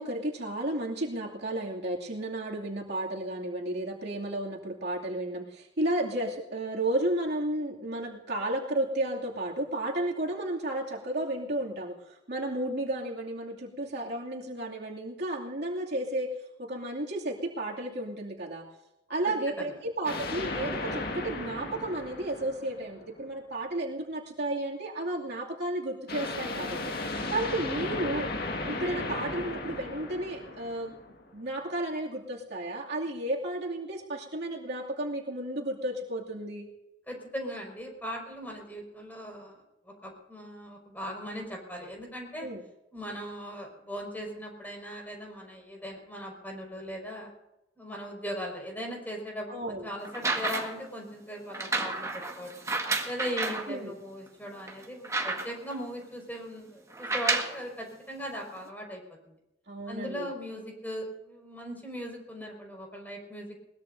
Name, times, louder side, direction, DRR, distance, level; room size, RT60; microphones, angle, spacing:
voice 1, 0.0-12.0 12.3-16.3 16.6-18.7 19.1-26.8 27.3-28.3 28.6-30.9 31.3-36.7 42.4-42.6 49.5-49.8 53.7-53.9 59.7-60.3, right 1 dB, 60° right, -2 dB, 2.6 m, -33 dB
voice 2, 19.2-19.8 37.1-42.5 42.9-47.3 47.8-52.6 53.0-59.3 59.9-63.6, equal, 10° left, 0 dB, 5.6 m, -39 dB
sound 1, 20.0-23.2 26.1-31.3, left 2 dB, 55° left, 1.9 m, -35 dB
sound 2, 50.0-50.9 51.5-53.7 54.3-54.4 54.7-55.7 56.9-57.6 58.6-58.7, right 3 dB, 15° right, 1.7 m, -31 dB
21.5 x 20.0 x 2.7 m, 0.90 s
head